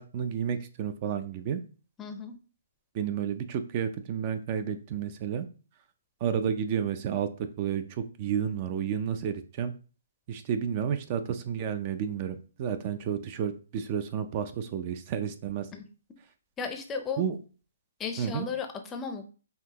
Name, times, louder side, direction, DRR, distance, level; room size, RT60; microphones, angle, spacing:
voice 1, 0.0-1.6 2.9-5.5 6.2-9.7 10.3-15.7 17.2-17.4 18.2-18.5, right 8 dB, 35° right, 10 dB, 0.4 m, -31 dB
voice 2, 2.0-2.4 15.7-15.8 16.6-17.2 18.0-19.2, left 5 dB, 15° left, 6 dB, 0.6 m, -35 dB
5.6 x 2.7 x 2.9 m, 0.37 s
hypercardioid pair, 150°, 0 cm